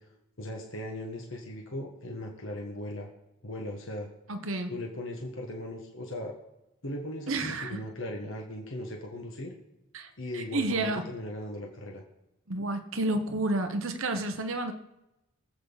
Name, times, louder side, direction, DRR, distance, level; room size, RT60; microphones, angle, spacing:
voice 1, 0.4-3.1 3.4-4.1 4.7-6.3 6.8-9.5 10.2-12.0, left 1 dB, 60° left, 1 dB, 1.6 m, -38 dB
voice 2, 4.3-4.7 7.3-7.8 9.9-11.1 12.5-14.7, right 2 dB, 65° right, 6 dB, 1.0 m, -30 dB
24.0 x 8.1 x 4.0 m, 0.93 s
head